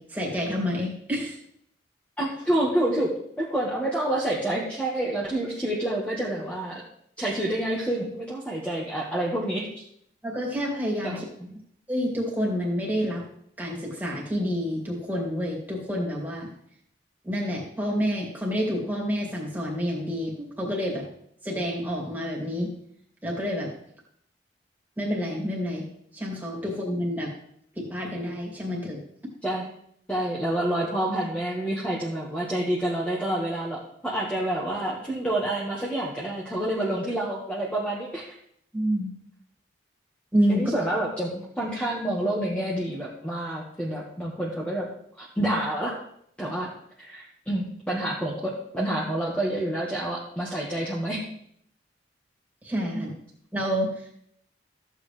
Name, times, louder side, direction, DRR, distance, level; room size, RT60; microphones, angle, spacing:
voice 1, 0.0-1.4 10.2-11.2 11.9-13.2 13.6-16.5 17.2-21.1 21.4-22.7 23.2-23.7 25.0-25.9 26.1-27.3 27.8-29.0 38.7-39.1 40.3-40.7 52.6-53.1 53.5-54.2, equal, 10° right, -3 dB, 2.6 m, -28 dB
voice 2, 2.2-3.1 3.4-6.8 7.2-9.7 11.0-11.5 29.4-29.6 30.1-38.3 40.5-44.9 45.2-46.0 46.4-46.7 47.0-51.2, right 1 dB, 5° left, -6 dB, 1.5 m, -28 dB
14.0 x 8.0 x 3.3 m, 0.69 s
head